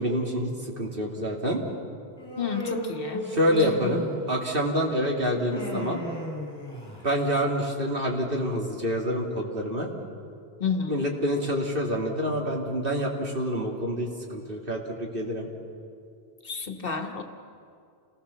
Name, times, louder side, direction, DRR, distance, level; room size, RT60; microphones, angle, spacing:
voice 1, 0.0-1.6 3.3-6.0 7.0-9.9 10.9-15.5, equal, 60° right, 0 dB, 2.9 m, -27 dB
Human voice, 2.2-4.4 5.3-7.2, left 1 dB, 25° left, 6.2 m, -35 dB
voice 2, 2.4-3.3 10.6-11.1 16.4-17.2, left 6 dB, 60° left, 6 dB, 1.6 m, -30 dB
29.0 x 19.5 x 7.1 m, 2.4 s
omnidirectional pair, 1.1 m